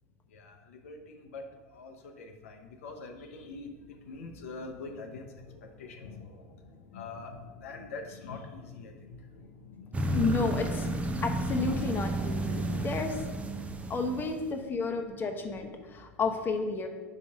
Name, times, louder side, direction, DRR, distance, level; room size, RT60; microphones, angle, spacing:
voice 1, 0.3-1.4 1.7-10.3 13.6-14.0 14.6-14.7, left 3 dB, 70° left, 3 dB, 0.8 m, -45 dB
sound 1, 9.9-14.5, right 1 dB, 15° right, 0.6 m, -32 dB
voice 2, 10.1-10.9 11.2-13.2 13.9-16.9, left 4 dB, 25° left, 3 dB, 0.9 m, -31 dB
5.5 x 4.0 x 5.8 m, 1.3 s
figure-of-eight pair, 80°, 8 cm